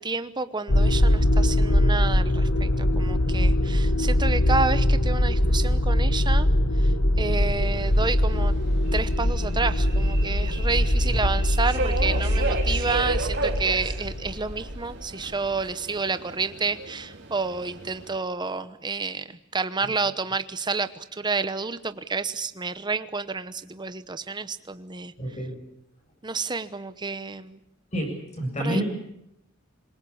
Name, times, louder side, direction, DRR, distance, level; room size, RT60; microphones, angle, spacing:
voice 1, 0.0-6.5 6.7-8.6 8.9-25.1 26.2-27.6 28.6-28.8, right 4 dB, 20° right, 12 dB, 1.0 m, -30 dB
sound 1, 0.7-14.9, left 1 dB, 75° left, 1.5 m, -22 dB
Subway metro underground, 7.6-18.2, right 3 dB, 55° right, 3.7 m, -35 dB
voice 2, 25.2-25.6 27.9-28.8, equal, 35° left, 4 dB, 7.7 m, -29 dB
26.5 x 22.0 x 7.2 m, 0.78 s
head